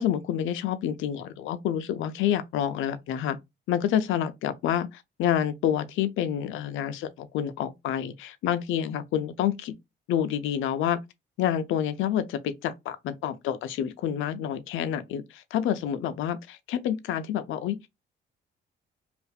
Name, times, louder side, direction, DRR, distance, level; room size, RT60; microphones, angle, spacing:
voice 1, 0.0-3.4 3.7-9.8 10.1-11.0 11.4-17.9, left 10 dB, 85° left, 0.5 m, -28 dB
2.9 x 2.5 x 2.3 m
cardioid pair, 90°, 20 cm